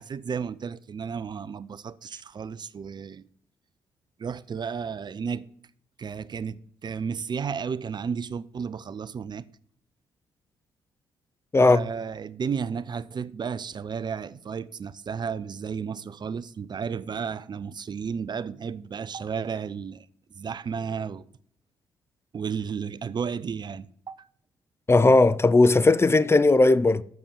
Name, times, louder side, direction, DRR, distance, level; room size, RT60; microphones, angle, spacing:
voice 1, 0.0-3.3 4.2-5.4 6.0-9.5 11.6-20.1 20.3-21.2 22.3-24.2, right 6 dB, 40° right, 0.5 m, -33 dB
voice 2, 24.9-27.0, left 2 dB, 20° left, 0.5 m, -17 dB
7.6 x 6.9 x 6.9 m
hypercardioid pair, 40°, 11 cm